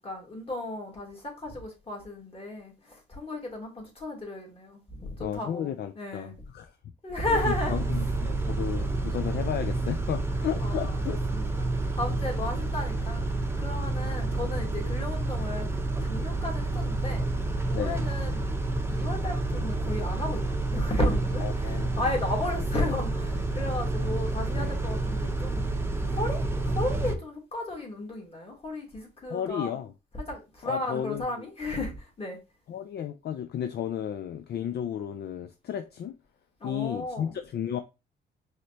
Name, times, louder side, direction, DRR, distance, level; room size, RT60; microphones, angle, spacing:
voice 1, 0.0-5.7 5.9-6.4 7.0-8.0 10.6-13.2 13.6-17.3 17.7-18.6 18.9-25.7 26.1-29.8 30.1-32.4 36.6-37.4, left 1 dB, 30° left, 2.1 m, -34 dB
voice 2, 5.2-6.7 7.3-11.2 17.7-18.1 21.4-22.0 24.6-24.8 29.3-29.9 30.6-31.5 32.7-36.2 36.6-37.8, left 9 dB, 55° left, 0.5 m, -33 dB
Car / Idling / Accelerating revving vroom, 7.2-27.1, right 2 dB, 10° right, 0.7 m, -29 dB
4.9 x 3.2 x 2.9 m
cardioid pair, 90°, 20 cm